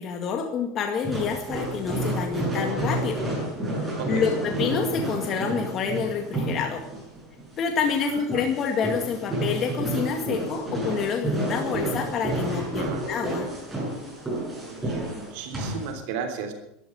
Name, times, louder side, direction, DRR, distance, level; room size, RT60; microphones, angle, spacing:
voice 1, 0.0-3.3 4.1-6.9 7.6-13.5, left 6 dB, 35° left, 3 dB, 2.1 m, -28 dB
sound 1, 1.0-15.9, right 1 dB, 10° right, 8.0 m, -30 dB
voice 2, 12.7-13.1 14.6-16.5, right 6 dB, 70° right, 5 dB, 3.3 m, -34 dB
13.0 x 12.0 x 8.1 m, 0.80 s
supercardioid pair, 140°, 0 cm